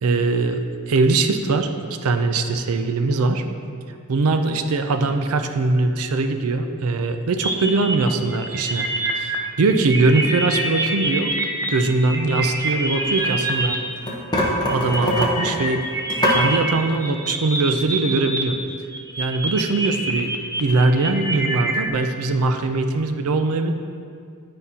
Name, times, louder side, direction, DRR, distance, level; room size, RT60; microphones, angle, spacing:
voice 1, 0.0-1.7 2.0-3.4 4.1-8.9 9.2-11.3 11.7-13.8 14.7-15.8 16.3-18.6 19.2-20.3 20.6-23.7, right 3 dB, 75° right, 7 dB, 0.5 m, -21 dB
sound 1, 7.4-13.7 14.4-18.4 18.7-21.9, right 2 dB, 15° right, 0.4 m, -26 dB
sound 2, 12.7-13.6 14.0-16.4, left 1 dB, 20° left, 0.9 m, -23 dB
9.3 x 5.3 x 2.8 m, 2.3 s
head